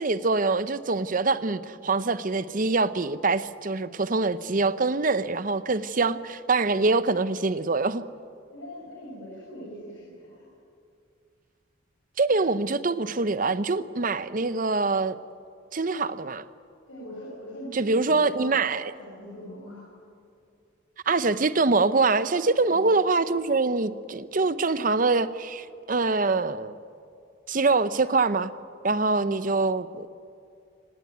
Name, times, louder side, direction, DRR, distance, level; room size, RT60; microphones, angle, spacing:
voice 1, 0.0-8.0 12.2-15.2 15.7-16.4 17.7-18.9 21.1-26.8 27.5-28.5 28.8-30.1, right 3 dB, 40° right, 0.7 m, -24 dB
voice 2, 8.5-10.4 16.9-18.7 19.0-19.9 22.6-22.9, equal, 75° left, 6.6 m, -42 dB
25.0 x 19.0 x 9.4 m
head